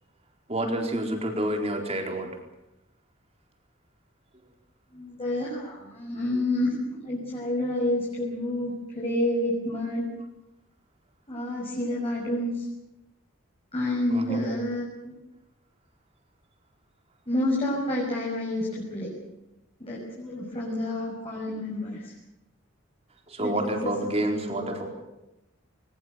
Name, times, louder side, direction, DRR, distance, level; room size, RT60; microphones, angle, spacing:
voice 1, 0.5-2.3 14.1-14.5 23.3-24.9, right 1 dB, 30° right, 3 dB, 4.4 m, -28 dB
voice 2, 4.9-10.1 11.3-12.6 13.7-15.1 17.3-19.1 19.8-22.1 23.4-23.9 24.2-24.6, left 1 dB, 30° left, -4 dB, 6.2 m, -29 dB
22.0 x 21.0 x 8.2 m, 0.93 s
head